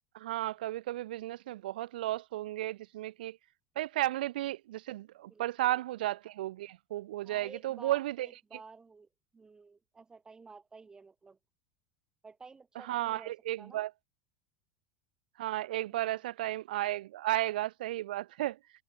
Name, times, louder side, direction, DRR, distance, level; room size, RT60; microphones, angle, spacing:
voice 1, 0.1-3.4 3.8-8.3 12.8-13.9 15.4-18.6, right 15 dB, 85° right, 0.5 m, -34 dB
voice 2, 5.3-5.8 7.2-11.4 12.2-13.8 15.9-16.2, right 4 dB, 15° right, 2.2 m, -53 dB
supercardioid pair, 120°, 5 cm